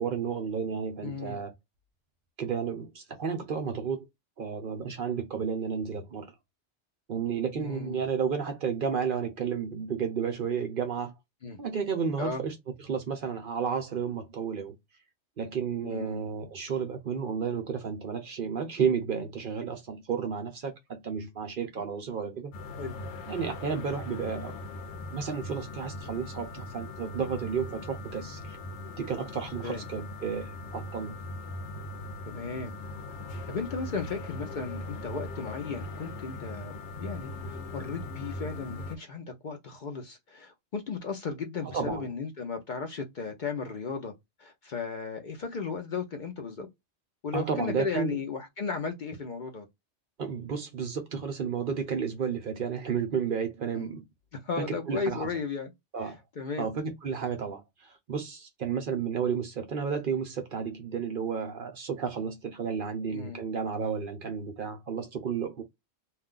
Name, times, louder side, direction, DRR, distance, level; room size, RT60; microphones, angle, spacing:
voice 1, 0.0-1.5 2.4-4.0 4.4-6.3 7.1-11.1 11.6-12.5 12.9-14.7 15.4-22.5 23.3-24.5 25.1-28.6 29.0-31.2 41.6-42.1 47.3-48.2 50.2-54.0 54.6-55.3 55.9-56.2 56.6-65.6, right 6 dB, 55° right, 0.7 m, -32 dB
voice 2, 1.0-1.4 7.6-8.0 11.4-11.6 12.2-12.4 15.8-16.2 22.8-23.0 29.6-29.8 32.2-32.7 33.5-44.1 44.4-46.7 47.2-49.7 53.7-53.9 54.3-55.7 56.0-56.7 63.1-63.4, left 5 dB, 55° left, 0.6 m, -35 dB
sound 1, 22.5-39.0, left 2 dB, 80° left, 0.9 m, -40 dB
2.3 x 2.2 x 3.6 m
omnidirectional pair, 1.2 m